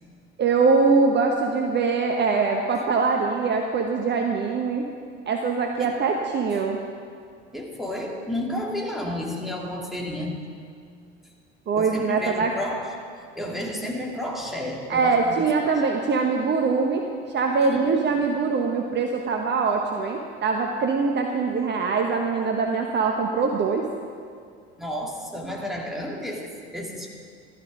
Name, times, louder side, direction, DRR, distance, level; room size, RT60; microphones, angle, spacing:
voice 1, 0.4-4.9 5.3-6.8 11.7-12.5 14.9-23.8, right 4 dB, 30° right, 2 dB, 1.2 m, -23 dB
voice 2, 7.5-10.4 11.7-13.0 13.3-15.8 17.8-18.3 24.8-27.1, left 1 dB, ahead, -1 dB, 2.7 m, -32 dB
15.5 x 12.5 x 5.3 m, 2.2 s
figure-of-eight pair, 65°, 33 cm